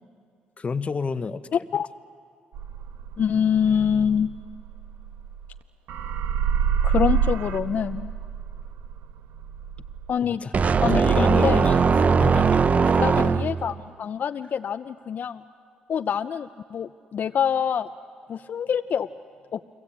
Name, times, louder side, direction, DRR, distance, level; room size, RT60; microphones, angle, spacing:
voice 1, 0.6-1.5 10.2-10.5 10.9-13.5, left 4 dB, 40° left, 12 dB, 1.1 m, -31 dB
sound 1, 2.5-5.6 5.9-10.1, right 8 dB, 80° right, 1.3 m, -28 dB
voice 2, 3.2-4.3 6.8-8.1 10.1-10.5 10.8-11.7 13.0-15.4 15.9-17.9 18.3-19.1 19.5-19.6, left 8 dB, 60° left, 9 dB, 0.6 m, -25 dB
sound 2, 10.5-13.7, right 5 dB, 45° right, 0.8 m, -19 dB
30.0 x 22.5 x 8.6 m, 2.2 s
supercardioid pair, 65°, 3 cm